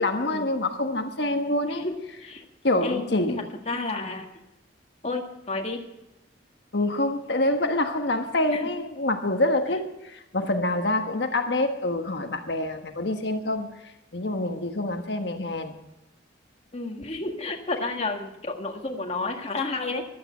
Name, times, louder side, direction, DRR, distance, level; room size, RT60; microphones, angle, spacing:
voice 1, 0.0-1.9 2.6-3.5 6.7-13.7 14.1-15.8, left 2 dB, 65° left, 5 dB, 1.4 m, -26 dB
voice 2, 1.6-1.9 2.2-2.4 2.8-4.3 5.0-5.8 8.5-8.7 16.7-20.1, left 3 dB, 35° left, 3 dB, 1.8 m, -31 dB
14.5 x 12.0 x 5.1 m, 0.92 s
head